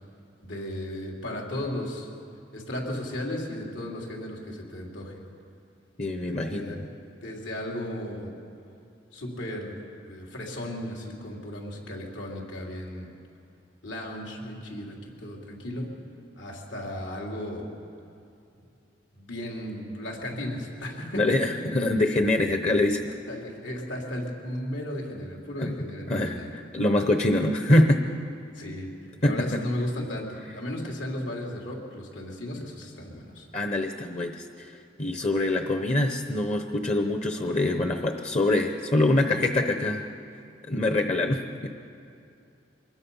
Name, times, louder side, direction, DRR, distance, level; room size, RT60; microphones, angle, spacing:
voice 1, 0.4-2.1 2.5-5.2 6.2-6.9 7.2-8.3 9.1-9.8 10.1-13.1 13.8-15.9 16.4-17.6 19.1-21.5 23.3-26.5 28.5-28.9 29.2-33.5, left 1 dB, 75° left, -1 dB, 3.5 m, -35 dB
voice 2, 6.0-6.9 21.1-23.0 25.6-25.7 26.1-28.0 29.2-29.6 33.5-34.7 35.0-40.1 40.7-41.7, left 1 dB, 35° left, 5 dB, 0.9 m, -24 dB
24.5 x 20.5 x 5.6 m, 2.5 s
head